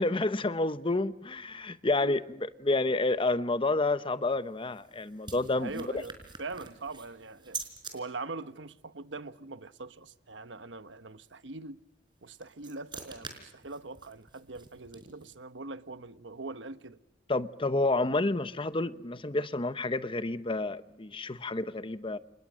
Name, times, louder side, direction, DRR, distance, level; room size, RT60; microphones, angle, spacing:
voice 1, 0.0-5.9 17.3-22.2, left 2 dB, 30° left, 0.9 m, -29 dB
sound 1, 4.3-7.9 12.1-15.4, right 5 dB, 25° right, 4.8 m, -46 dB
voice 2, 5.6-7.6 7.9-11.8 12.2-17.0, right 3 dB, 80° right, 1.2 m, -42 dB
29.5 x 28.5 x 6.3 m
head